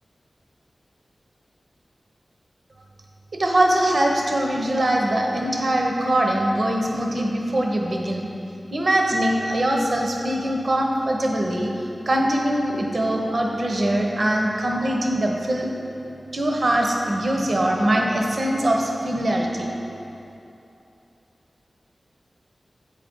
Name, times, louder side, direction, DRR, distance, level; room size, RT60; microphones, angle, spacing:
voice 1, 3.3-8.3 8.7-15.7 16.3-19.7, right 1 dB, 60° right, 0 dB, 0.8 m, -22 dB
8.2 x 5.0 x 5.3 m, 2.9 s
wide cardioid pair, 55°, 0 cm